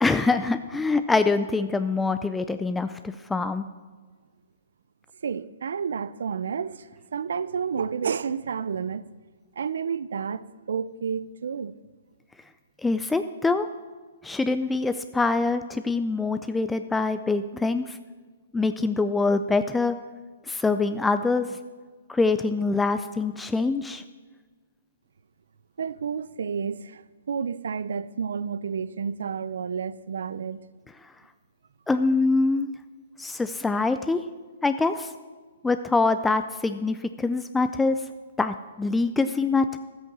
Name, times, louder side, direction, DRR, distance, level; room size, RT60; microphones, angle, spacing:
voice 1, 0.0-3.7 12.8-13.7 14.2-18.0 18.5-20.0 20.5-21.6 22.1-24.0 31.9-32.7 33.2-34.2 34.6-35.1 35.6-38.0 38.4-39.8, left 3 dB, 5° left, 0.3 m, -24 dB
voice 2, 5.2-9.1 9.6-11.7 25.8-30.6, right 6 dB, 75° right, 0.5 m, -30 dB
11.5 x 8.1 x 6.1 m
hypercardioid pair, 140°, 0 cm